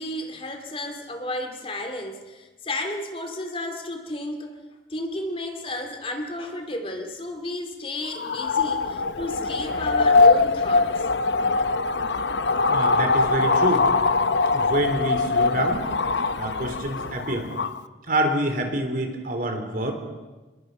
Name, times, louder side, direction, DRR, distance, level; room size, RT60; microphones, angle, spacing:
voice 1, 0.0-4.6 4.9-10.9, left 1 dB, 35° left, 5 dB, 2.5 m, -32 dB
sound 1, 8.1-17.8, left 3 dB, 90° left, 0.8 m, -22 dB
voice 2, 12.7-13.9 14.5-15.8 16.4-17.5 18.1-19.9, right 1 dB, 50° right, 4 dB, 3.6 m, -26 dB
27.0 x 21.5 x 5.6 m, 1.2 s
head